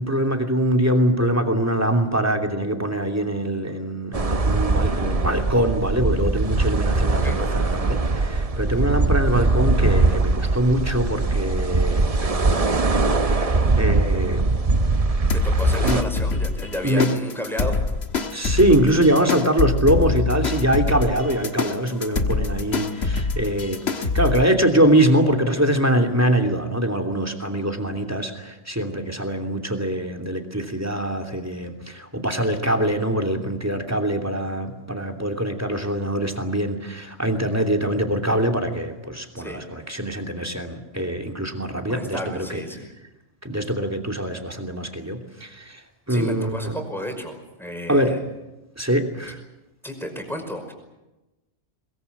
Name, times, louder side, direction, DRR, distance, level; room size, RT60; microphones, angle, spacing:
voice 1, 0.0-14.5 15.8-16.0 16.8-17.1 18.3-42.6 43.4-46.7 47.9-48.1 48.8-49.4, right 1 dB, 15° right, 7 dB, 2.9 m, -23 dB
sound 1, 4.1-16.0, right 3 dB, 35° right, 1.0 m, -21 dB
sound 2, 15.3-24.4, left 4 dB, 65° left, 1.8 m, -25 dB
voice 2, 15.3-17.8 39.4-39.6 41.8-42.9 46.1-48.2 49.8-50.7, equal, ahead, 4 dB, 5.3 m, -32 dB
22.5 x 22.0 x 8.4 m, 1.0 s
omnidirectional pair, 1.2 m